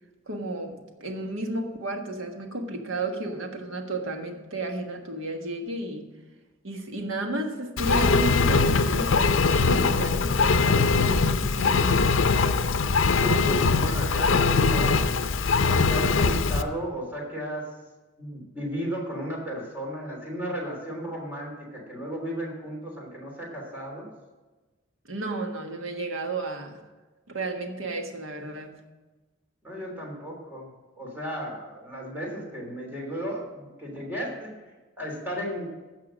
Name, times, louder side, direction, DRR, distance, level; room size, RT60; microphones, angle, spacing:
voice 1, 0.3-6.1 6.6-12.0 25.1-26.8 27.3-28.7, right 2 dB, 80° right, 4 dB, 1.5 m, -33 dB
Engine, 7.8-16.6, left 4 dB, 75° left, 0.6 m, -22 dB
voice 2, 13.2-15.1 15.9-17.7 18.2-24.1 29.6-30.7 31.0-34.5 35.0-35.7, equal, 10° right, -2 dB, 3.1 m, -34 dB
15.5 x 6.0 x 6.3 m, 1.2 s
head